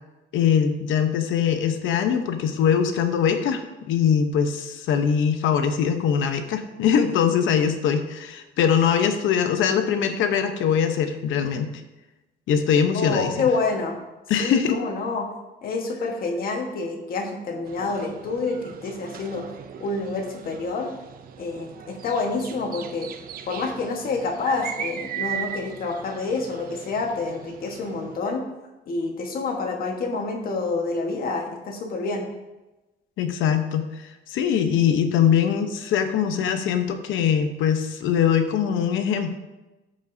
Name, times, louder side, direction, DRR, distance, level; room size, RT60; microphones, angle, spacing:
voice 1, 0.3-11.7 12.5-13.3 14.3-14.8 33.2-33.9 34.3-39.3, left 8 dB, 80° left, 7 dB, 0.9 m, -22 dB
voice 2, 12.9-14.0 14.4-15.3 15.6-19.4 19.8-20.9 21.4-23.1 23.5-28.4 28.9-32.3, left 3 dB, 50° left, 2 dB, 1.4 m, -28 dB
sound 1, 17.7-28.2, right 9 dB, 50° right, 0.5 m, -38 dB
13.5 x 5.3 x 2.7 m, 1.1 s
cardioid pair, 170°, 20 cm